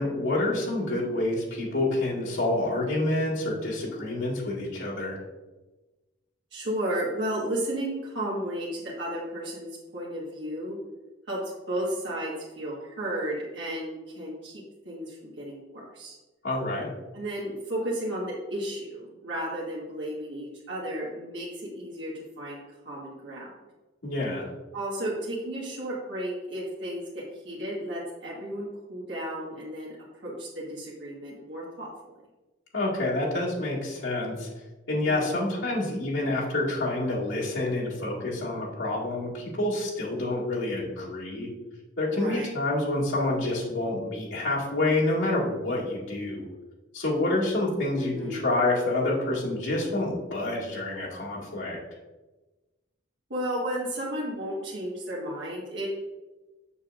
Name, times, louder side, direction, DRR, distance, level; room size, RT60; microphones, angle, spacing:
voice 1, 0.0-5.2 16.4-16.9 24.0-24.5 32.7-34.5 34.9-41.5 42.0-46.5 46.9-51.8, left 2 dB, 85° left, -5 dB, 2.1 m, -28 dB
voice 2, 6.5-10.8 11.3-11.4 11.7-16.1 17.1-23.5 24.7-30.0 30.2-31.9 35.0-35.5 42.1-42.5 47.9-48.4 53.3-55.9, right 1 dB, 65° right, -6 dB, 1.5 m, -33 dB
6.9 x 6.5 x 2.5 m, 1.1 s
head